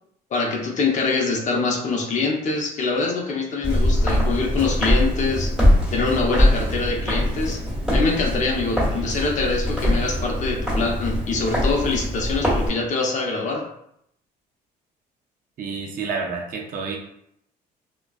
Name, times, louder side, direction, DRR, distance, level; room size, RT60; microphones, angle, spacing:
voice 1, 0.3-5.5 5.9-7.6 7.9-13.7, left 3 dB, 45° left, 0 dB, 0.6 m, -24 dB
Walk footsteps, 3.6-12.7, left 1 dB, 5° right, 1.3 m, -22 dB
voice 2, 15.6-17.0, right 5 dB, 55° right, 0 dB, 0.6 m, -29 dB
2.3 x 2.2 x 2.4 m, 0.72 s
cardioid pair, 110°, 17 cm